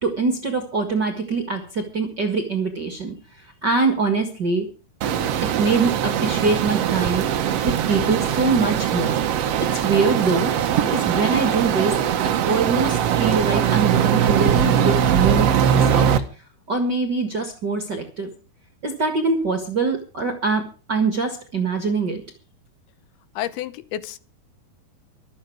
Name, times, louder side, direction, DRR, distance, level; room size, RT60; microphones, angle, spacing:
voice 1, 0.0-3.1 3.6-4.6 5.6-7.2 7.6-9.2 9.6-10.5 10.8-11.9 12.4-16.1 16.7-18.3 18.8-22.2, right 4 dB, 45° right, 5 dB, 1.5 m, -23 dB
sound 1, 5.0-16.2, right 9 dB, 90° right, 1.4 m, -21 dB
voice 2, 23.4-24.2, left 12 dB, 80° left, 15 dB, 2.7 m, -30 dB
24.0 x 8.1 x 4.7 m, 0.37 s
omnidirectional pair, 4.6 m